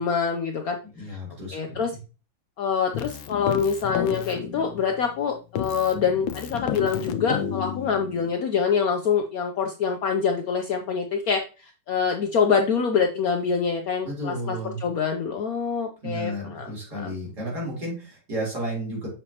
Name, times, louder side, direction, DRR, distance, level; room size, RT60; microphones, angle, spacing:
voice 1, 0.0-1.2 1.5-1.9 2.6-17.1, left 6 dB, 65° left, 4 dB, 0.9 m, -25 dB
voice 2, 0.9-2.0 14.0-14.8 16.0-19.1, right 1 dB, 55° right, -4 dB, 4.0 m, -32 dB
Keyboard (musical), 2.9-5.2 5.6-8.3, left 8 dB, 85° left, 1.4 m, -31 dB
7.2 x 5.3 x 2.8 m, 0.33 s
omnidirectional pair, 2.1 m